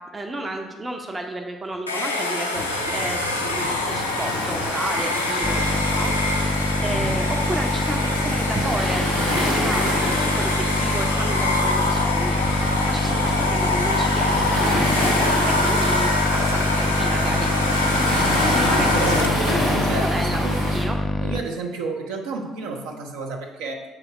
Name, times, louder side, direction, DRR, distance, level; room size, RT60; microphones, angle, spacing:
voice 1, 0.0-5.6 5.9-9.0 9.4-17.5 18.3-19.2 20.0-21.0, right 2 dB, 25° right, 4 dB, 0.6 m, -32 dB
Domestic sounds home sounds, 1.9-19.5, left 2 dB, 85° left, 0.5 m, -25 dB
Waves surf, 2.5-20.8, left 1 dB, 85° right, 1.4 m, -28 dB
sound 1, 5.4-21.4, left 1 dB, 15° left, 0.3 m, -25 dB
voice 2, 18.5-20.9 21.2-23.8, right 3 dB, 65° right, 2 dB, 0.7 m, -31 dB
6.9 x 3.4 x 4.7 m, 1.2 s
figure-of-eight pair, 50°, 0 cm